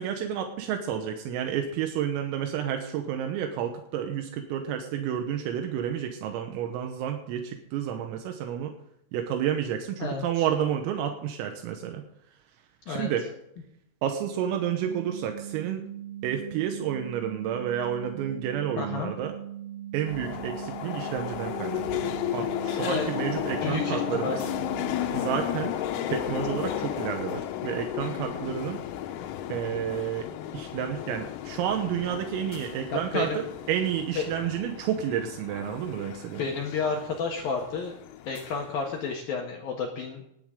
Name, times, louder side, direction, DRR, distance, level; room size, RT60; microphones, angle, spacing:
voice 1, 0.0-8.7 9.1-12.0 12.9-13.3 14.0-15.8 16.2-19.4 19.9-24.4 25.1-25.8 26.1-28.8 29.5-30.3 30.5-36.4, right 9 dB, 85° right, 5 dB, 3.8 m, -30 dB
voice 2, 10.0-10.4 12.9-13.1 18.8-19.1 22.7-23.1 23.6-24.4 32.9-33.4 34.2-34.3 36.4-37.9 38.3-40.2, left 5 dB, 65° left, 1 dB, 2.4 m, -31 dB
sound 1, 14.8-25.3, right 11 dB, 40° right, 3.4 m, -40 dB
sound 2, 20.1-39.2, left 11 dB, 85° left, 3.7 m, -34 dB
19.5 x 11.0 x 3.8 m, 0.78 s
omnidirectional pair, 6.0 m